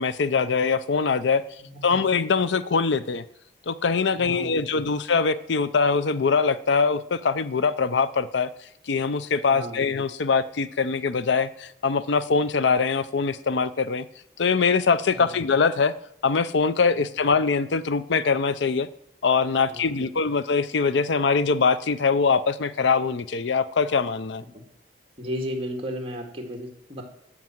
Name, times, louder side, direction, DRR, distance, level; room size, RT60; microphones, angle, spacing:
voice 1, 0.0-1.4 1.8-3.2 3.7-8.5 8.9-14.0 14.4-15.9 16.2-18.9 19.2-24.4, left 5 dB, 75° left, 15 dB, 0.5 m, -23 dB
voice 2, 1.6-1.9 4.2-4.6 9.5-9.8 15.1-15.4 17.0-17.1 19.7-20.1 24.5-24.6 25.2-27.0, equal, 30° right, 2 dB, 2.1 m, -34 dB
13.0 x 6.1 x 7.7 m, 0.74 s
head